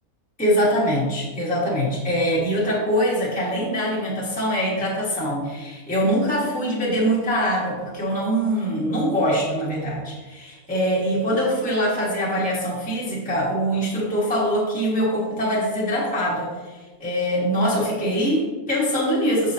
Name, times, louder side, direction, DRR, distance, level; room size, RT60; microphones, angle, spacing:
voice 1, 0.4-16.5 17.0-19.5, equal, 5° left, -6 dB, 1.3 m, -23 dB
6.2 x 5.7 x 2.8 m, 1.3 s
omnidirectional pair, 1.6 m